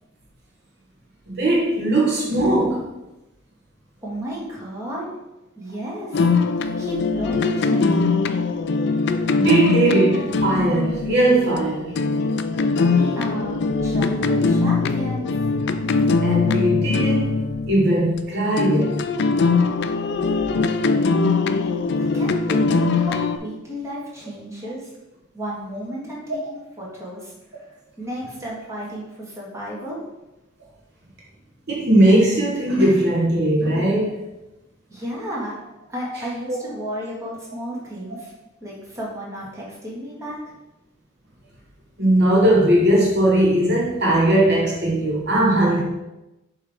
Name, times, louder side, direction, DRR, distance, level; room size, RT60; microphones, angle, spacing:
voice 1, 1.3-2.8 9.4-11.9 16.2-19.0 31.7-34.2 36.1-36.2 42.0-45.8, right 1 dB, 50° right, -3 dB, 1.2 m, -19 dB
voice 2, 4.0-5.1 5.6-6.3 6.8-8.2 12.8-15.3 21.3-21.4 22.0-24.9 25.3-27.6 28.0-30.0 34.9-35.5 35.9-38.3 38.6-40.6, equal, 15° right, -6 dB, 1.6 m, -33 dB
sound 1, 6.1-18.2 18.6-23.4, left 4 dB, 55° left, 0.4 m, -21 dB
7.1 x 3.1 x 4.9 m, 0.96 s
head